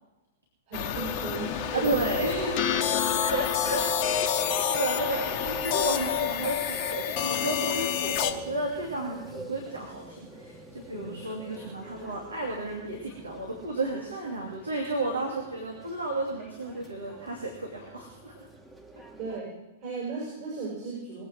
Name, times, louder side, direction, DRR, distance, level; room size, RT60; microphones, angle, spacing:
sound 1, 0.7-8.3, left 10 dB, 40° left, 1.1 m, -28 dB
voice 1, 0.7-2.1 10.9-11.1 19.2-19.5 19.8-21.2, right 3 dB, 45° right, -5 dB, 7.7 m, -36 dB
sound 2, 1.0-19.4, right 1 dB, 10° right, 1.6 m, -42 dB
voice 2, 1.7-18.5, right 2 dB, 75° right, -1 dB, 2.7 m, -33 dB
21.5 x 8.8 x 6.3 m, 1.0 s
figure-of-eight pair, 100°, 0 cm